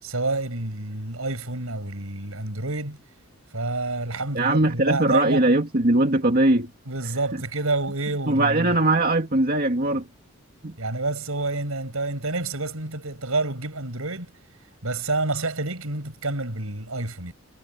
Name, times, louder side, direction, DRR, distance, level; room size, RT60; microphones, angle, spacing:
voice 1, 0.0-3.0 3.5-5.5 6.9-8.7 10.8-14.3 14.8-17.3, right 2 dB, 80° right, 5.5 m, -28 dB
voice 2, 4.3-6.7 8.3-10.1 10.6-10.8, right 2 dB, 45° right, 2.1 m, -20 dB
head